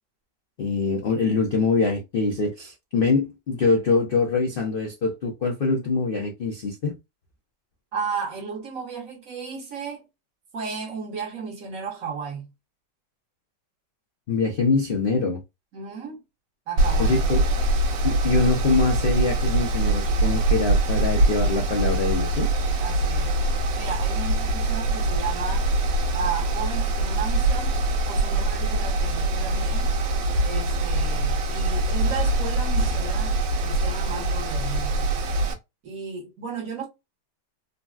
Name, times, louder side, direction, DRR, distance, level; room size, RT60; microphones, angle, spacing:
voice 1, 0.6-6.9 14.3-15.4 17.0-17.4 18.0-22.5, left 4 dB, 70° left, 0.5 m, -24 dB
voice 2, 7.9-10.0 10.5-12.5 15.7-16.2 16.7-17.2 22.8-23.4 23.7-25.7 26.1-27.8 28.1-29.9 30.4-35.2 35.8-36.9, right 5 dB, 50° right, 1.4 m, -34 dB
Mechanical fan, 16.8-35.5, right 2 dB, 85° right, 1.4 m, -23 dB
3.9 x 2.1 x 2.3 m
omnidirectional pair, 1.9 m